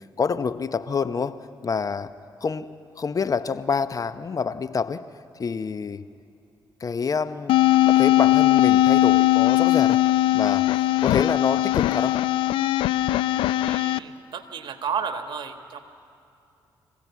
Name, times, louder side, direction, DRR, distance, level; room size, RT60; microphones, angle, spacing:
voice 1, 0.0-2.1 2.4-5.1 5.4-6.1 6.8-7.6 7.8-10.0 10.3-10.7 11.0-12.2, left 5 dB, 45° left, 13 dB, 0.8 m, -27 dB
sound 1, 7.5-14.0, left 15 dB, 80° left, 0.4 m, -19 dB
voice 2, 13.6-15.8, right 6 dB, 65° right, 7 dB, 1.6 m, -32 dB
25.5 x 16.0 x 8.3 m, 2.7 s
supercardioid pair, 60°, 9 cm